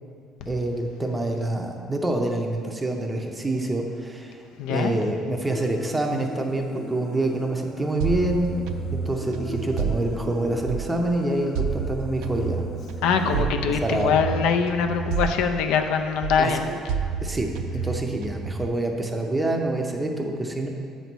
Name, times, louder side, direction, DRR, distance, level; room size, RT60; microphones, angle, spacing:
voice 1, 0.5-4.4 4.7-8.5 8.9-12.6 13.3-13.5 13.8-14.1 16.4-16.5 17.2-17.5 17.7-20.7, right 2 dB, 10° right, 2 dB, 0.6 m, -26 dB
voice 2, 4.6-4.9 13.0-16.6, left 6 dB, 75° left, 6 dB, 0.5 m, -23 dB
Human voice, 5.4-13.4, left 3 dB, 40° left, 0.7 m, -39 dB
sound 1, 8.0-11.1 11.6-16.0 16.2-18.7, right 6 dB, 80° right, 0.4 m, -30 dB
8.0 x 4.1 x 6.1 m, 2.4 s
cardioid pair, 160°, 0 cm